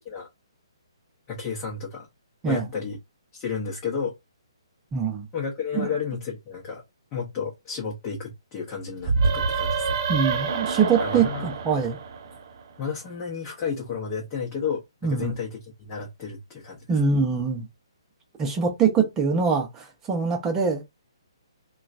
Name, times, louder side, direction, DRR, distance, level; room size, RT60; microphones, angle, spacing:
voice 1, 1.3-2.1 2.5-3.0 3.3-4.1 5.3-6.8 7.1-10.0 11.0-11.5 12.8-16.9, left 6 dB, 25° left, 0.9 m, -32 dB
voice 2, 4.9-5.3 5.7-5.9 10.1-12.0 15.0-15.3 16.9-17.7 18.4-20.8, right 5 dB, 15° right, 0.8 m, -23 dB
sound 1, 9.0-12.6, right 4 dB, 40° right, 0.5 m, -26 dB
3.0 x 2.3 x 2.5 m
figure-of-eight pair, 130°, 3 cm